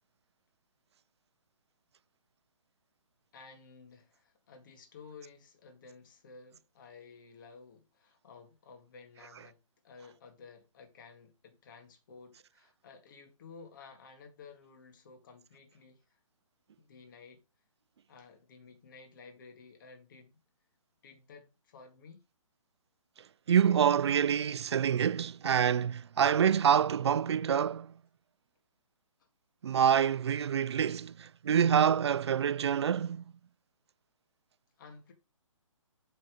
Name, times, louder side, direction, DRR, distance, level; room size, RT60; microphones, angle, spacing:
voice 1, 3.3-9.6 9.8-16.2 16.8-17.4 18.1-20.4 21.0-22.2 29.2-29.3 34.8-35.1, left 5 dB, 40° left, 1.9 m, -54 dB
voice 2, 23.5-27.9 29.6-33.2, right 8 dB, 55° right, 0.4 m, -26 dB
8.1 x 4.2 x 5.0 m
hypercardioid pair, 165°, 17 cm